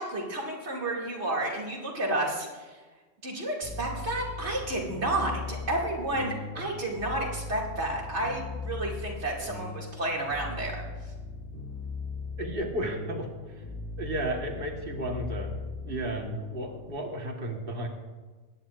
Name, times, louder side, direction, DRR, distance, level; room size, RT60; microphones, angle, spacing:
voice 1, 0.0-2.8 3.2-10.8, right 1 dB, 80° right, -2 dB, 2.7 m, -31 dB
sound 1, 3.6-16.9, left 3 dB, 60° left, 3.0 m, -39 dB
voice 2, 12.4-13.6 14.0-17.9, right 1 dB, 55° right, 2 dB, 1.6 m, -34 dB
22.0 x 10.0 x 2.5 m, 1.3 s
omnidirectional pair, 1.1 m